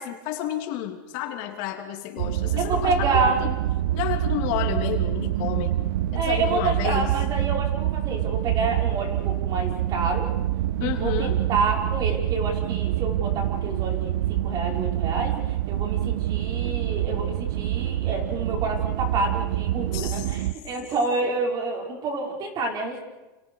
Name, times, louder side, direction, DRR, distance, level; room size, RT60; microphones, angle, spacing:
voice 1, 0.0-3.5 3.9-5.8 6.1-7.1 10.8-11.4 19.9-20.2, left 12 dB, 55° left, 4 dB, 3.2 m, -31 dB
sound 1, 2.2-20.5, right 13 dB, 75° right, 0.8 m, -26 dB
voice 2, 2.6-3.4 6.1-10.3 10.8-15.3 15.7-23.0, right 3 dB, 35° right, 2 dB, 5.4 m, -28 dB
29.0 x 28.5 x 4.9 m, 1.1 s
supercardioid pair, 140°, 11 cm